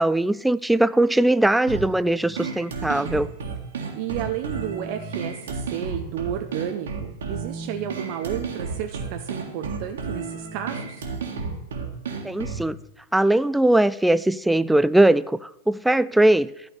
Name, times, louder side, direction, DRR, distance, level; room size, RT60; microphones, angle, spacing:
voice 1, 0.0-3.3 12.2-12.8 13.1-16.5, right 1 dB, 5° right, 16 dB, 0.3 m, -20 dB
sound 1, 1.7-12.7, right 4 dB, 65° right, 1.8 m, -32 dB
voice 2, 4.0-11.1, right 10 dB, 45° right, 6 dB, 0.8 m, -32 dB
12.0 x 5.2 x 8.3 m, 0.82 s
figure-of-eight pair, 90°, 0 cm